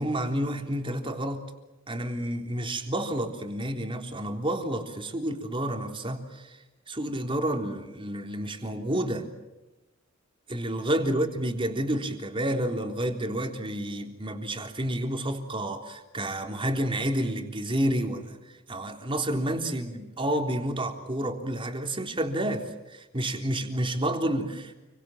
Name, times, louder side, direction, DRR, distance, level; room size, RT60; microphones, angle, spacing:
voice 1, 0.0-1.4 1.9-6.6 6.9-9.3 10.5-18.4 18.7-24.8, right 1 dB, 25° right, 4 dB, 3.7 m, -30 dB
29.5 x 24.0 x 7.6 m, 1.1 s
head